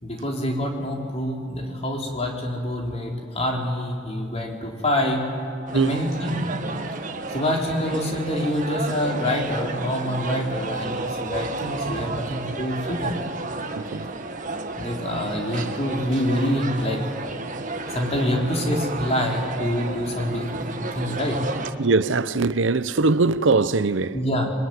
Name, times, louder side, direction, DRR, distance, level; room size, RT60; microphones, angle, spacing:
voice 1, 0.0-5.3 5.7-6.5 7.3-13.2 14.8-17.0 17.9-21.4 24.1-24.5, left 1 dB, 35° left, 4.1 m, -26 dB
sound 1, 5.7-21.7, right 3 dB, 45° right, 1.7 m, -32 dB
voice 2, 13.7-14.1 21.8-24.2, right 3 dB, 80° right, 0.8 m, -21 dB
26.0 x 23.5 x 9.6 m
head